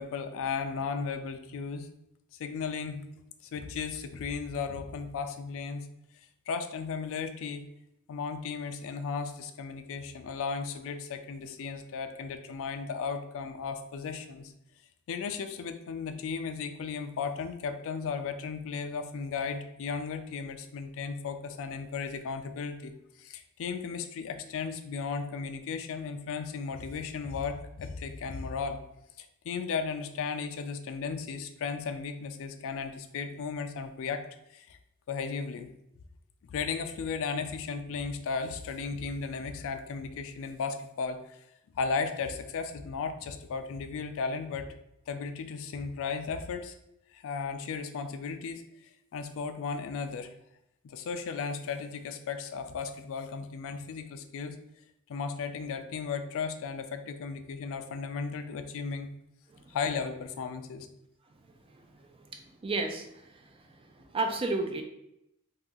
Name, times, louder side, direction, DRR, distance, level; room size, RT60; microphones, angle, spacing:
voice 1, 0.0-1.9 2.4-3.0 3.5-5.9 6.5-7.6 8.1-14.5 15.1-22.9 23.2-28.8 29.2-34.2 34.5-34.8 35.1-35.7 36.4-41.4 41.7-44.7 45.1-46.7 47.1-48.6 49.1-50.3 50.8-54.6 55.1-59.1 59.7-60.9, left 5 dB, 65° left, 8 dB, 0.3 m, -35 dB
voice 2, 61.7-64.8, right 3 dB, 25° right, 5 dB, 0.3 m, -34 dB
2.7 x 2.3 x 3.6 m, 0.82 s
head